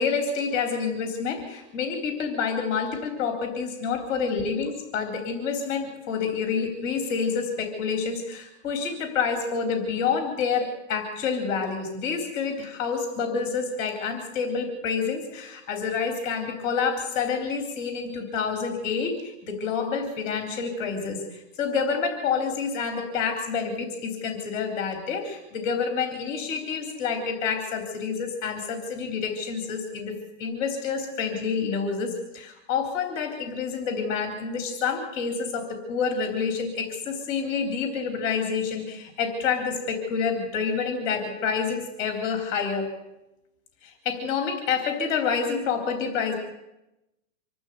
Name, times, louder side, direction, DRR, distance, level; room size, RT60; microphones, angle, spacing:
voice 1, 0.0-30.1 30.4-42.9 43.8-46.3, left 5 dB, 30° left, 4 dB, 3.5 m, -28 dB
26.0 x 12.5 x 8.2 m, 0.93 s
hypercardioid pair, 155°, 39 cm